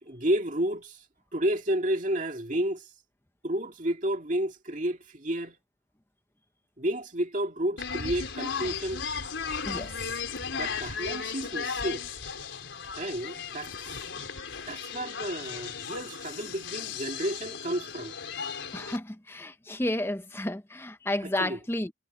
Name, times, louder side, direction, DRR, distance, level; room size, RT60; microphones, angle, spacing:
voice 1, 0.0-1.0 1.3-2.9 3.4-5.6 6.8-9.0 10.5-12.0 13.0-14.0 14.7-18.2 21.2-21.6, right 1 dB, 40° right, 2.2 m, -31 dB
sound 1, 7.8-19.0, left 6 dB, 75° left, 4.3 m, -36 dB
voice 2, 18.7-21.9, left 1 dB, 10° left, 0.9 m, -31 dB
head